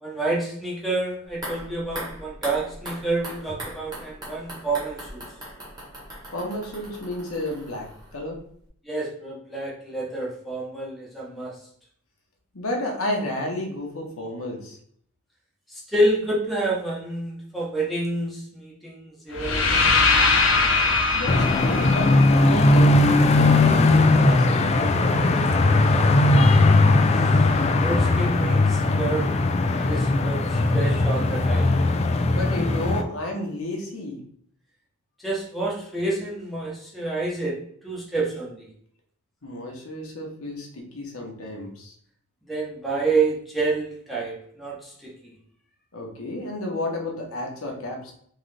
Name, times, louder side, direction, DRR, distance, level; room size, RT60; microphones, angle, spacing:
voice 1, 0.0-5.2 8.9-11.5 15.7-19.7 26.5-27.1 27.8-29.3 29.7-31.7 35.2-37.6 37.8-38.7 42.5-45.1, right 2 dB, ahead, -4 dB, 0.9 m, -28 dB
sound 1, 1.3-8.4 8.7-8.8, right 1 dB, 20° right, 1.5 m, -39 dB
voice 2, 6.3-8.4 12.5-14.8 21.1-23.0 23.2-25.5 32.3-34.2 39.4-41.9 45.9-48.1, left 1 dB, 75° left, 0 dB, 1.1 m, -31 dB
sound 2, 19.3-23.4, left 3 dB, 60° left, 0.7 m, -22 dB
sound 3, 21.3-33.0, left 2 dB, 30° left, 0.3 m, -19 dB
3.8 x 3.2 x 3.3 m, 0.64 s
head